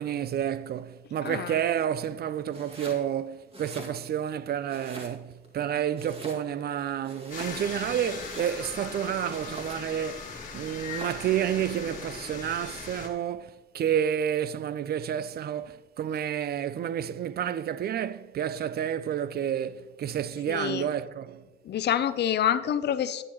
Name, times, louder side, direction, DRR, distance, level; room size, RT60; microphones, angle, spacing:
voice 1, 0.0-10.3 10.5-21.4, right 9 dB, 55° right, 0.4 m, -30 dB
voice 2, 1.2-1.5 20.5-20.9 21.7-23.2, left 10 dB, 60° left, 0.6 m, -27 dB
Domestic sounds home sounds, 2.5-3.1 3.4-4.3 4.7-5.5 5.9-6.7 7.0-8.8 9.3-10.0 10.6-11.3, right 1 dB, 30° right, 2.2 m, -44 dB
sound 1, 7.3-13.1, left 4 dB, 40° left, 1.8 m, -39 dB
9.9 x 9.9 x 3.1 m
cardioid pair, 90°, 20 cm